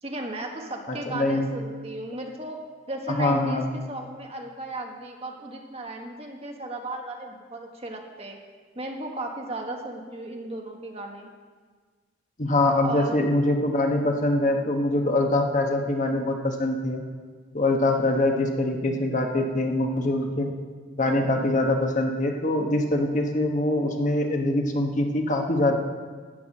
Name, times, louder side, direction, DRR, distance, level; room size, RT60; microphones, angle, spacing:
voice 1, 0.0-2.6 2.9-8.4 8.7-11.3 12.8-13.2 14.4-14.7, right 2 dB, 30° right, 2 dB, 1.3 m, -35 dB
voice 2, 0.9-1.5 3.2-3.7 12.4-17.0 17.5-20.5 21.0-25.8, left 1 dB, 40° left, 3 dB, 1.1 m, -24 dB
12.5 x 5.9 x 8.7 m, 1.5 s
head